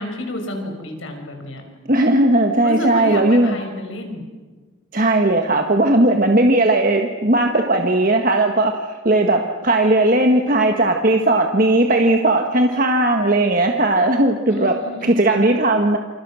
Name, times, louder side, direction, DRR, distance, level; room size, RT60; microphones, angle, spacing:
voice 1, 0.0-1.6 2.6-4.2 14.5-15.4, left 1 dB, 75° left, 3 dB, 5.9 m, -30 dB
voice 2, 1.9-3.6 4.9-14.8 15.0-16.0, right 1 dB, 40° right, 4 dB, 1.5 m, -17 dB
28.5 x 28.5 x 6.4 m, 1.4 s
head